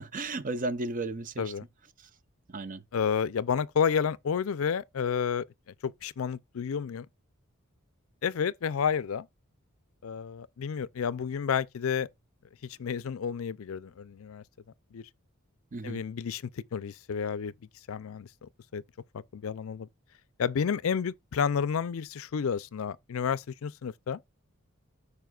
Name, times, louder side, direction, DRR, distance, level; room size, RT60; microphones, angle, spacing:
voice 1, 0.0-1.5 2.0-2.1 2.5-2.8 15.7-16.0, right 2 dB, 40° right, 0.6 m, -34 dB
voice 2, 2.9-5.4 5.8-7.1 8.2-9.3 10.0-12.1 12.6-14.4 14.9-15.0 15.8-17.5 17.9-18.8 19.1-19.9 20.4-24.2, left 7 dB, 70° left, 0.4 m, -31 dB
14.0 x 5.0 x 2.4 m
head